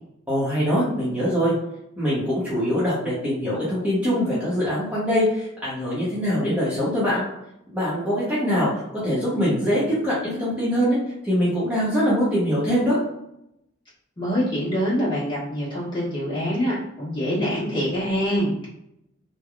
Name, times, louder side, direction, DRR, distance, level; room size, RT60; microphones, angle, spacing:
voice 1, 0.3-1.5 2.0-7.2 7.7-8.7 9.0-11.0 11.2-13.0, equal, 5° right, -10 dB, 0.8 m, -23 dB
voice 2, 14.2-18.7, equal, 25° left, -9 dB, 1.4 m, -25 dB
3.3 x 2.1 x 2.3 m, 0.80 s
head